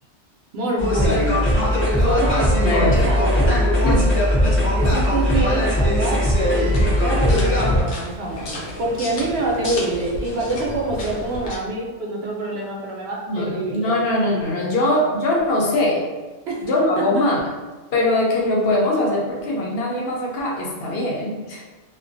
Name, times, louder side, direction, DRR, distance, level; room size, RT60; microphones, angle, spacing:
voice 1, 0.5-1.5 2.0-3.6 4.7-14.0 16.5-16.6, right 1 dB, 70° right, -3 dB, 0.8 m, -26 dB
sound 1, 0.8-7.8, left 1 dB, 15° left, 0.4 m, -19 dB
voice 2, 2.6-3.0 3.8-4.1 13.3-16.0 16.6-17.4 17.9-21.6, left 1 dB, 65° left, -3 dB, 0.8 m, -21 dB
sound 2, 6.6-11.6, left 1 dB, 90° left, 0.9 m, -33 dB
2.4 x 2.2 x 2.5 m, 1.2 s
omnidirectional pair, 1.1 m